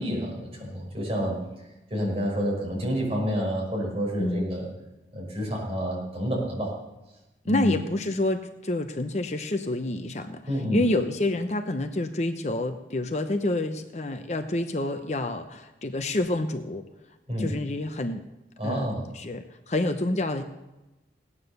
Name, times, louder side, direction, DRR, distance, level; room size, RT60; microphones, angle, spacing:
voice 1, 0.0-1.4 1.9-4.7 5.1-6.7 7.4-7.8 10.5-10.8 17.3-17.5 18.6-19.0, equal, 35° right, -3 dB, 5.6 m, -28 dB
voice 2, 7.5-10.4 10.7-16.8 17.4-18.2 18.6-18.9 19.1-20.4, left 1 dB, 40° left, 7 dB, 0.8 m, -28 dB
17.0 x 9.7 x 6.8 m, 1.0 s
head